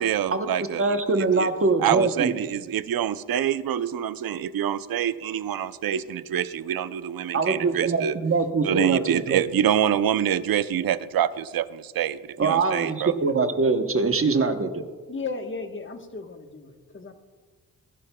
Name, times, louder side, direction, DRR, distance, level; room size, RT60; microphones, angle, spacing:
voice 1, 0.0-0.8 1.4-1.5 1.8-8.1 8.6-13.2, right 10 dB, 70° right, 14 dB, 0.6 m, -26 dB
voice 2, 0.8-2.3 7.3-9.4 12.4-14.8, right 4 dB, 35° right, 7 dB, 0.9 m, -23 dB
voice 3, 15.1-17.1, left 4 dB, 30° left, 6 dB, 1.2 m, -35 dB
21.5 x 11.5 x 2.2 m, 1.5 s
cardioid pair, 95°, 37 cm